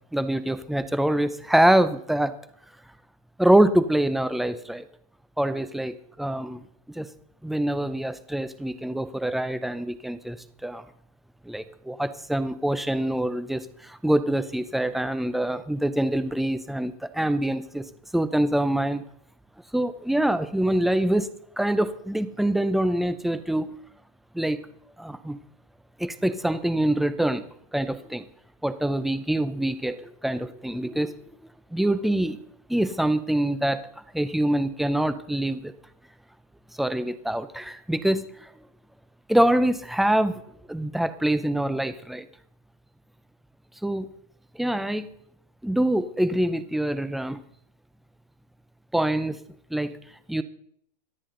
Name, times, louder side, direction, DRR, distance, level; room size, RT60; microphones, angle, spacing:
voice 1, 0.1-2.3 3.4-4.9 5.4-6.6 7.0-7.1 7.4-10.4 10.6-10.8 11.5-17.8 18.1-19.0 19.7-21.3 21.6-23.7 24.3-24.6 25.0-25.4 26.0-27.4 27.7-28.2 28.6-31.1 31.7-32.4 32.7-33.8 34.1-35.7 36.8-38.3 39.3-40.4 40.7-42.3 43.8-44.1 44.6-45.1 45.6-47.4 48.9-49.4 49.7-49.9 50.3-50.4, right 1 dB, ahead, 12 dB, 0.5 m, -25 dB
25.0 x 8.5 x 3.8 m, 0.67 s
supercardioid pair, 150°, 21 cm